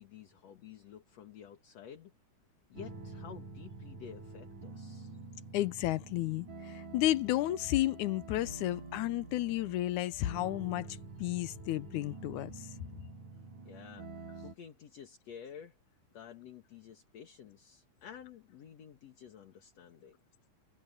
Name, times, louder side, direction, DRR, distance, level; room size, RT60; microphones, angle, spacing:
voice 1, 0.0-2.1 2.7-5.2 13.6-15.8 16.1-20.2, left 8 dB, 60° left, 2.7 m, -51 dB
sound 1, 2.7-14.6, right 3 dB, 80° right, 6.7 m, -48 dB
voice 2, 5.5-12.7, left 15 dB, 80° left, 2.1 m, -32 dB
omnidirectional pair, 3.5 m